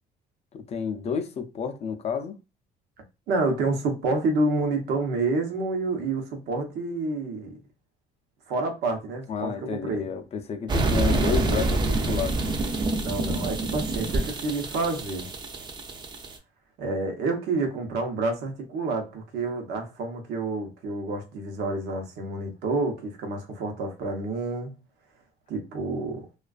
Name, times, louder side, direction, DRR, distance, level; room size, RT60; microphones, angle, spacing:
voice 1, 0.5-2.4 9.3-12.4, left 6 dB, 40° left, 0.4 m, -30 dB
voice 2, 3.3-7.5 8.5-10.1 13.0-15.3 16.8-24.7 25.5-26.3, right 3 dB, 75° right, 0.8 m, -28 dB
sound 1, 10.7-16.3, right 2 dB, 25° right, 0.4 m, -27 dB
2.3 x 2.3 x 2.3 m
cardioid pair, 110°, 17 cm